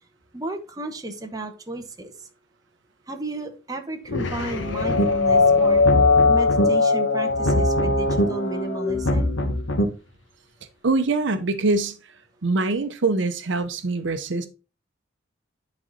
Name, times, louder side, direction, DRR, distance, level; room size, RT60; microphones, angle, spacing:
voice 1, 0.3-2.3 3.1-5.8 6.3-9.4, right 1 dB, 20° right, 1.0 m, -33 dB
sound 1, 4.1-9.6, left 3 dB, 70° left, 1.2 m, -21 dB
sound 2, 4.8-5.3 5.7-6.6 7.3-8.2 8.9-9.8, equal, 90° left, 1.4 m, -23 dB
voice 2, 10.8-11.9 12.4-14.5, right 3 dB, 70° right, 0.8 m, -23 dB
10.5 x 4.0 x 4.0 m
head